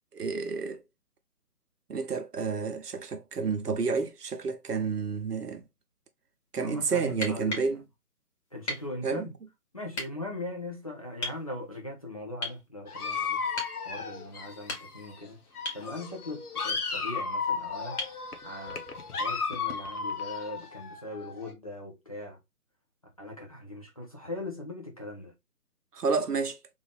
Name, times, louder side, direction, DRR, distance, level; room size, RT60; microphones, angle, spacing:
voice 1, 0.1-0.8 1.9-5.6 6.5-7.8 9.0-9.3 25.9-26.6, right 5 dB, 85° right, 0.9 m, -30 dB
voice 2, 6.6-7.7 8.5-9.3 9.7-13.4 13.8-15.4 15.7-18.0 18.4-18.8 19.2-22.4 23.2-25.3, left 1 dB, 25° left, 0.6 m, -40 dB
sound 1, 7.1-7.7 8.7-8.9 9.9-10.1 11.2-11.4 12.4-12.6 13.6-13.8 14.5-15.1 15.6-15.9 18.0-18.2 20.1-20.2, left 1 dB, 45° left, 1.9 m, -36 dB
Dog, 12.9-15.3 15.5-21.5, left 5 dB, 75° left, 1.0 m, -34 dB
3.5 x 2.6 x 3.3 m
figure-of-eight pair, 150°, 46 cm